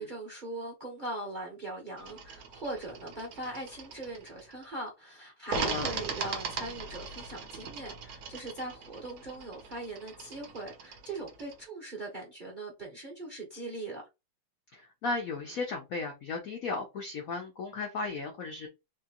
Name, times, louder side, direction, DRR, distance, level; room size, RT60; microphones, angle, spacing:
voice 1, 0.0-14.0, right 2 dB, 35° right, 0.8 m, -40 dB
sound 1, 2.0-4.7 5.5-11.7, right 5 dB, 65° right, 0.9 m, -40 dB
voice 2, 5.6-5.9 14.7-18.7, left 3 dB, 65° left, 0.8 m, -35 dB
3.6 x 2.9 x 2.9 m
omnidirectional pair, 2.3 m